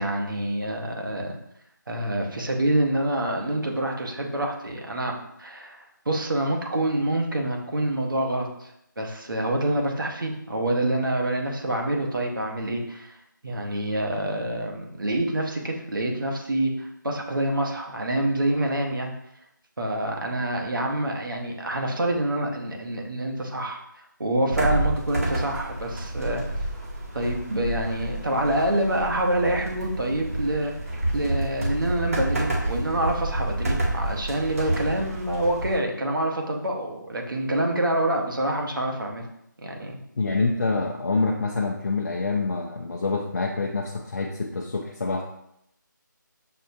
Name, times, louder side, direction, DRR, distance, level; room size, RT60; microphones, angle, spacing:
voice 1, 0.0-1.4 1.9-5.1 5.4-19.1 19.8-23.8 24.2-26.4 27.1-30.7 31.1-39.2 39.6-40.0, right 1 dB, 85° right, 1 dB, 1.0 m, -26 dB
sound 1, 24.5-35.8, right 1 dB, 45° right, 0.8 m, -29 dB
voice 2, 40.2-45.2, left 3 dB, 50° left, 0 dB, 0.4 m, -26 dB
6.3 x 2.2 x 2.7 m, 0.76 s
figure-of-eight pair, 170°, 11 cm